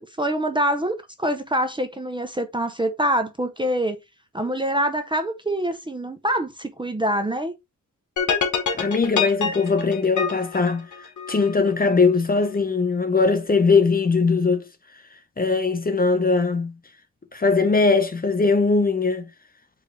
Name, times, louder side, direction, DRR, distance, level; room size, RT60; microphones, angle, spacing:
voice 1, 0.0-4.0 4.3-7.5, right 1 dB, 15° right, 0.6 m, -25 dB
sound 1, 8.2-11.5, left 6 dB, 65° left, 1.1 m, -26 dB
voice 2, 8.7-14.7 15.4-16.7 17.3-19.2, left 4 dB, 25° left, 0.7 m, -20 dB
4.8 x 3.3 x 3.2 m
wide cardioid pair, 150°, 33 cm